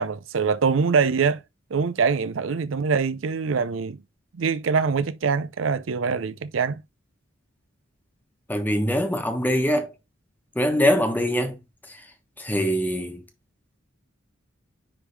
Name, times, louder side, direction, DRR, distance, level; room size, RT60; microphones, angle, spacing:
voice 1, 0.0-1.4 1.7-4.0 4.3-6.8, right 5 dB, 80° right, 0.5 m, -24 dB
voice 2, 8.5-9.9 10.5-11.6 11.9-12.0 12.4-13.2, equal, 10° left, 1.2 m, -23 dB
9.8 x 3.5 x 3.3 m
head